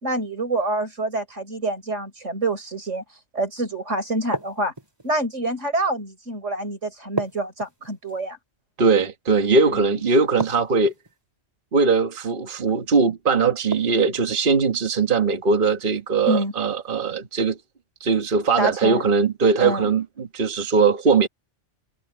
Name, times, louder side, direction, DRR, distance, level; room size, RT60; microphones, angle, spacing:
voice 1, 0.0-3.0 3.3-4.7 5.0-8.4 16.3-16.5 18.6-19.0 19.6-19.9, right 1 dB, 80° right, 5.9 m, -26 dB
sound 1, 4.3-5.1 7.2-8.2 10.4-11.1 13.7-14.3, right 1 dB, 20° right, 4.0 m, -32 dB
voice 2, 8.8-10.9 11.7-17.6 18.0-21.3, right 4 dB, 45° right, 1.6 m, -20 dB
omnidirectional pair, 1.2 m